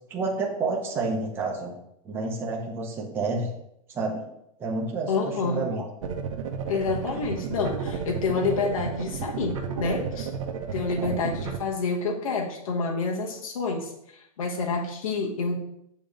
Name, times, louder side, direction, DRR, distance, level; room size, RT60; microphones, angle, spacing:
voice 1, 0.1-1.7 2.0-3.5 3.9-4.2 4.6-5.8 11.0-11.1, right 3 dB, 10° right, -2 dB, 0.8 m, -29 dB
voice 2, 5.1-5.7 6.7-10.3 10.7-15.6, left 4 dB, 70° left, 0 dB, 1.2 m, -28 dB
sound 1, 6.0-11.6, right 6 dB, 65° right, 0.9 m, -32 dB
7.0 x 3.0 x 5.1 m, 0.77 s
supercardioid pair, 165°, 18 cm